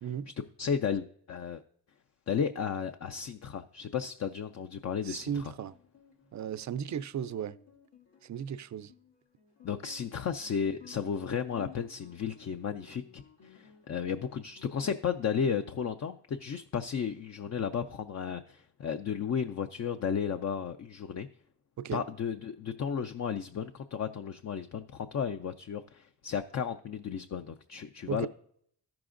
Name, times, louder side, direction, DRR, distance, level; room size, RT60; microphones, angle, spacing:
voice 1, 0.6-1.6 2.3-5.5 9.6-21.3 21.9-28.3, left 7 dB, 40° left, 0.4 m, -34 dB
voice 2, 5.0-5.8 6.3-7.6 8.2-8.9 21.8-22.0 28.1-28.3, right 8 dB, 45° right, 0.4 m, -35 dB
Guitar, 5.7-15.7, left 7 dB, 80° left, 1.4 m, -56 dB
13.5 x 6.0 x 2.5 m
cardioid pair, 55°, 43 cm